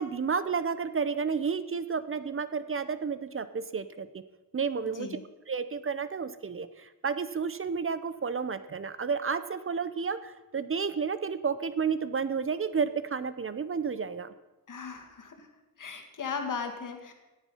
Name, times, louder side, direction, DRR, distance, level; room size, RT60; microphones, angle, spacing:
voice 1, 0.0-4.2 4.5-5.2 5.5-14.3, right 5 dB, 40° right, 13 dB, 0.7 m, -31 dB
voice 2, 14.7-15.5 15.8-17.1, left 5 dB, 60° left, 4 dB, 2.1 m, -37 dB
17.5 x 7.3 x 5.5 m, 1.1 s
cardioid pair, 95°, 36 cm